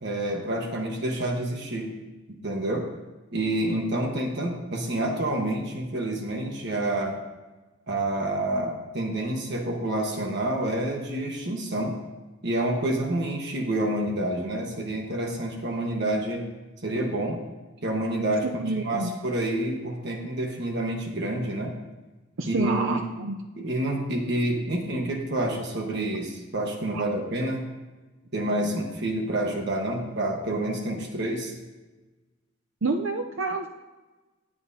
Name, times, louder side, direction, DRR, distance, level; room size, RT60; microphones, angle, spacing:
voice 1, 0.0-2.0 2.3-2.9 3.3-7.2 7.9-12.0 12.4-16.5 16.8-17.4 17.8-18.5 18.7-21.8 22.5-23.0 23.6-27.6 28.3-31.6, right 1 dB, 50° right, 1 dB, 1.4 m, -28 dB
voice 2, 18.4-19.1 22.4-23.4 26.9-27.0 32.8-33.7, right 3 dB, 65° right, 4 dB, 0.6 m, -28 dB
18.0 x 9.8 x 2.8 m, 1.2 s
head